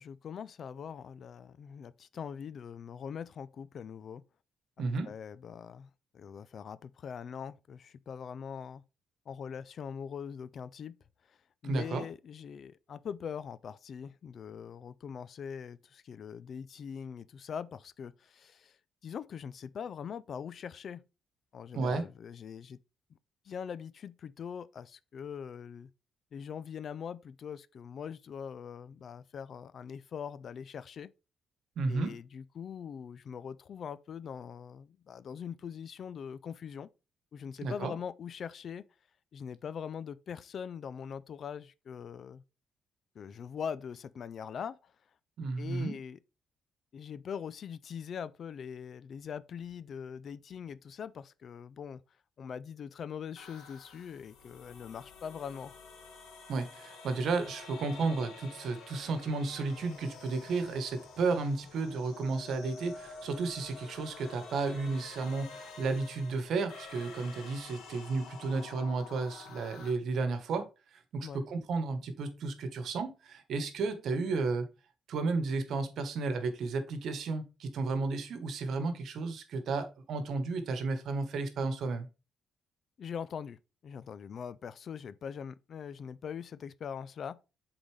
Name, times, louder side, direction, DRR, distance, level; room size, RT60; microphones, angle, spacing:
voice 1, 0.0-4.2 5.0-8.8 9.3-11.0 11.6-18.8 19.0-21.0 21.5-22.8 23.5-25.9 26.3-31.1 31.9-36.9 37.3-38.8 39.3-42.4 43.2-44.9 45.6-46.2 46.9-52.0 52.4-55.8 71.2-71.4 83.0-87.4, left 7 dB, 55° left, 0.4 m, -42 dB
voice 2, 4.8-5.1 11.6-12.1 21.7-22.0 31.8-32.1 37.6-37.9 45.4-45.9 56.5-74.7 75.1-82.1, right 3 dB, 70° right, 1.2 m, -33 dB
sound 1, 53.4-69.9, left 4 dB, 90° left, 1.7 m, -49 dB
8.0 x 3.9 x 3.2 m
cardioid pair, 90°, 0 cm